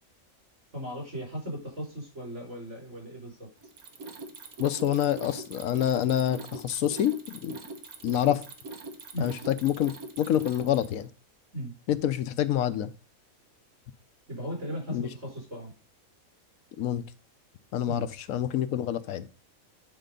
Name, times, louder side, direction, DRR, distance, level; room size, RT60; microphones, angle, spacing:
voice 1, 0.7-3.5 9.1-9.3 11.5-11.7 14.3-15.7 17.8-18.1, equal, 60° right, 4.8 m, -37 dB
Mechanisms, 3.6-11.1, right 3 dB, 90° right, 1.7 m, -42 dB
voice 2, 4.6-7.6 8.0-8.4 9.2-11.1 11.9-12.9 14.9-15.1 16.8-17.0 17.7-19.3, left 11 dB, 80° left, 1.1 m, -27 dB
9.2 x 4.5 x 5.1 m
omnidirectional pair, 1.5 m